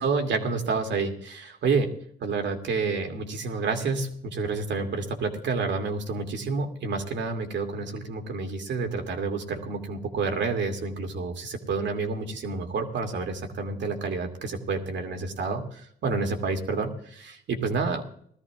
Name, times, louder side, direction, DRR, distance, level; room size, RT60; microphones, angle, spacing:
voice 1, 0.0-1.9 2.2-18.0, right 4 dB, 65° right, 4 dB, 2.5 m, -29 dB
20.5 x 13.5 x 2.4 m, 0.63 s
cardioid pair, 90°, 20 cm